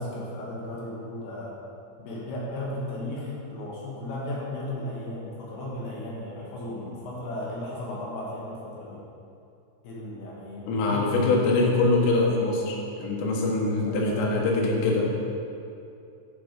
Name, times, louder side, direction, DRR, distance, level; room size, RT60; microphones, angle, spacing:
voice 1, 0.0-1.5 2.0-9.0 9.8-11.4 13.7-14.5, left 1 dB, 65° left, -6 dB, 2.9 m, -35 dB
voice 2, 10.7-15.1, left 2 dB, 80° left, -2 dB, 3.9 m, -23 dB
10.5 x 5.6 x 5.2 m, 2.6 s
omnidirectional pair, 5.7 m